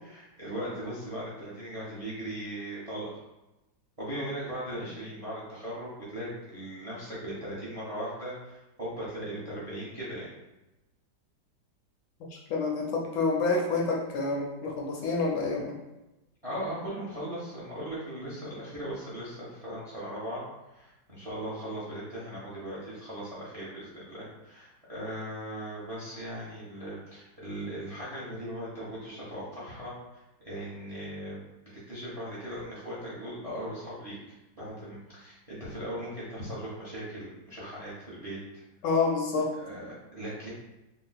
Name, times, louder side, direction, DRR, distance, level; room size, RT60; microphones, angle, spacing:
voice 1, 0.0-3.1 4.0-10.3 16.4-31.4 31.9-38.4 39.6-40.5, right 1 dB, 35° right, -8 dB, 0.6 m, -38 dB
voice 2, 12.5-15.8 38.8-39.5, left 3 dB, 70° left, -1 dB, 1.2 m, -28 dB
3.6 x 2.1 x 4.0 m, 0.99 s
omnidirectional pair, 2.1 m